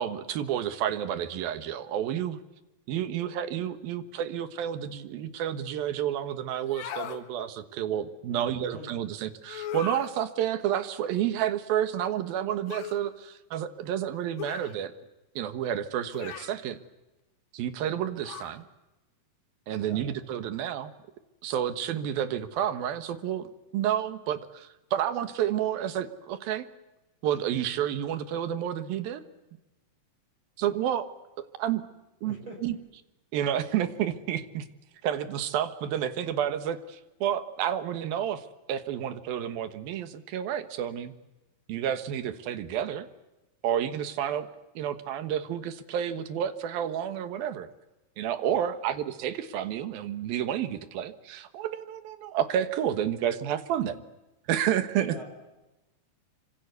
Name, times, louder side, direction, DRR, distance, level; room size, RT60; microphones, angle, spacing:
voice 1, 0.0-2.4 2.9-14.9 15.4-16.8 17.5-18.7 19.7-20.9 21.4-23.5 23.7-26.7 27.2-29.2 30.6-31.1 31.6-31.8 32.2-32.8 33.3-34.7 35.0-41.1 41.7-43.1 43.6-44.5 44.8-47.7 48.2-54.0 54.5-55.2, right 10 dB, 85° right, 11 dB, 3.2 m, -30 dB
sound 1, 6.6-7.2 9.5-10.1 12.7-13.0 14.4-14.8 16.1-16.6 18.2-18.6, left 10 dB, 75° left, 3.4 m, -38 dB
voice 2, 8.3-8.9 19.8-20.1 32.2-32.6 48.5-48.7 55.0-55.3, right 1 dB, 35° right, 1 dB, 5.7 m, -43 dB
25.5 x 25.0 x 8.1 m, 1.0 s
omnidirectional pair, 4.1 m